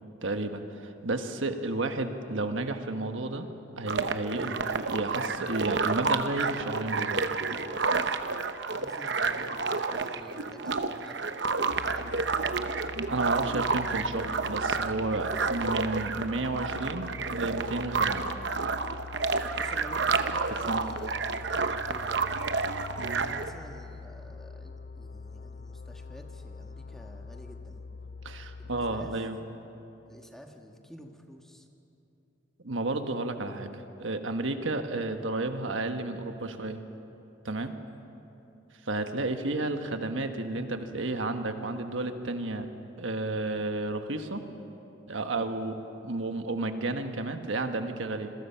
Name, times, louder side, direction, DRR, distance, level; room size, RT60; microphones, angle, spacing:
voice 1, 0.2-3.5 3.8-7.2 13.1-18.3 20.7-20.8 23.0-23.2 28.2-29.4 32.6-36.8 37.4-37.7 38.8-42.7 43.0-44.4 45.1-45.8 46.0-48.3, right 2 dB, 85° right, 7 dB, 1.4 m, -32 dB
sound 1, 3.9-23.5, right 4 dB, 60° right, 0.9 m, -30 dB
voice 2, 4.3-4.7 8.7-11.3 11.6-12.2 19.6-21.3 21.8-22.4 23.0-27.9 28.6-29.2 30.1-31.7, equal, ahead, 2 dB, 1.3 m, -49 dB
sound 2, 11.7-29.2, left 4 dB, 45° left, 0.4 m, -44 dB
27.0 x 21.5 x 5.7 m, 2.9 s
head